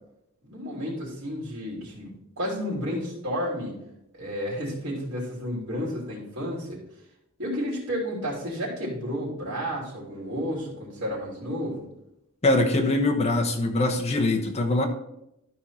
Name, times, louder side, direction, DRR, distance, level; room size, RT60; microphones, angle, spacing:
voice 1, 0.4-3.8 4.1-6.8 7.4-11.8, equal, 60° right, -6 dB, 3.2 m, -31 dB
voice 2, 12.4-14.9, left 2 dB, 30° left, 2 dB, 1.1 m, -23 dB
12.5 x 4.8 x 4.3 m, 0.82 s
head